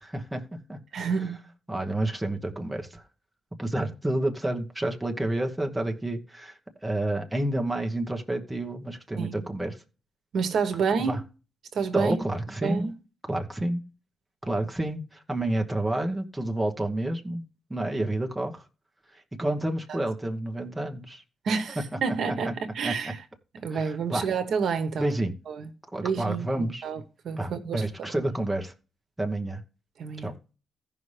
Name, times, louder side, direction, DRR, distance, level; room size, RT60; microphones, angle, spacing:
voice 1, 0.0-1.1 1.7-3.0 3.6-9.8 11.0-11.2 11.9-12.9 13.3-13.9 14.4-17.4 17.7-18.6 19.1-21.2 22.3-22.5 22.8-23.1 23.7-24.3 25.0-25.3 25.9-26.8 27.4-28.7 29.2-29.6 30.2-30.4, right 1 dB, 5° right, 1.1 m, -29 dB
voice 2, 0.9-1.4 9.2-9.3 10.3-11.2 11.7-12.2 12.6-12.9 19.9-20.0 21.4-23.2 23.5-25.2 25.5-25.7 26.0-27.8 28.1-28.2 30.0-30.3, right 5 dB, 60° right, 1.1 m, -29 dB
16.0 x 5.5 x 3.3 m
wide cardioid pair, 180°, 0 cm